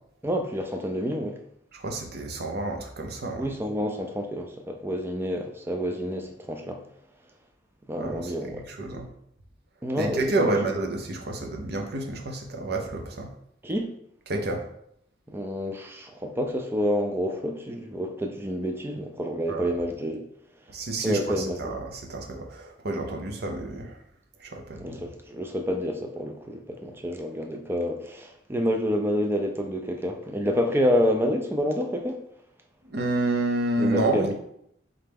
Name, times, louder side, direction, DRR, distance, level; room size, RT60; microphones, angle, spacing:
voice 1, 0.2-1.4 3.4-6.8 7.9-8.6 9.8-10.6 13.6-13.9 15.3-20.2 21.0-21.8 24.8-32.2 33.8-34.3, equal, 10° right, 0.4 m, -28 dB
voice 2, 1.7-3.5 8.0-9.1 10.0-13.3 14.3-14.6 19.5-19.7 20.7-24.0 24.4-25.0 32.9-34.3, right 2 dB, 55° right, 0.6 m, -29 dB
3.9 x 3.3 x 3.5 m
head